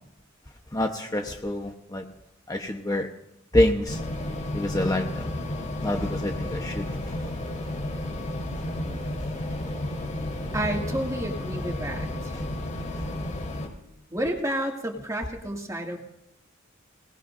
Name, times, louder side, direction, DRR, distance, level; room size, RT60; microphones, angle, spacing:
voice 1, 0.7-2.0 2.5-3.1 3.5-4.0 4.5-5.3 5.8-7.3, left 1 dB, 20° left, 3 dB, 1.0 m, -26 dB
sound 1, 3.9-13.7, left 1 dB, 40° left, 3.9 m, -32 dB
voice 2, 10.5-12.1 14.1-16.0, right 1 dB, 15° right, 1 dB, 2.2 m, -30 dB
26.0 x 19.0 x 2.6 m, 0.85 s
head